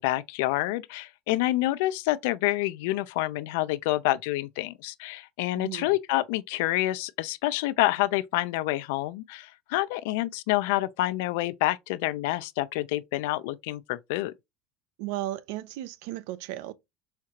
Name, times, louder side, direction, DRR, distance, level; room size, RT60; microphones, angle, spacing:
voice 1, 0.0-14.3, left 17 dB, 85° left, 0.3 m, -28 dB
voice 2, 5.5-5.9 15.0-16.7, right 15 dB, 80° right, 0.4 m, -35 dB
4.4 x 2.4 x 2.8 m
cardioid pair, 145°, 0 cm